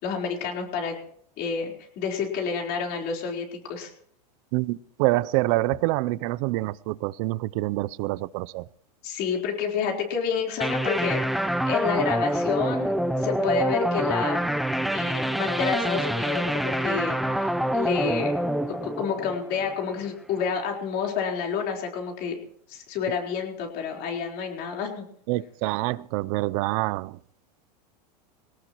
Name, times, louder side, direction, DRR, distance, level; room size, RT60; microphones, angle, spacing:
voice 1, 0.0-1.0 1.4-3.9 9.0-14.4 14.9-18.3 18.7-22.4 22.7-25.1, left 6 dB, 50° left, 2 dB, 4.2 m, -29 dB
voice 2, 4.5-8.6 25.3-27.1, right 19 dB, 60° right, 20 dB, 0.6 m, -26 dB
sound 1, 10.6-20.0, right 1 dB, ahead, 0.6 m, -26 dB
20.5 x 18.0 x 3.1 m, 0.67 s
hypercardioid pair, 115°, 21 cm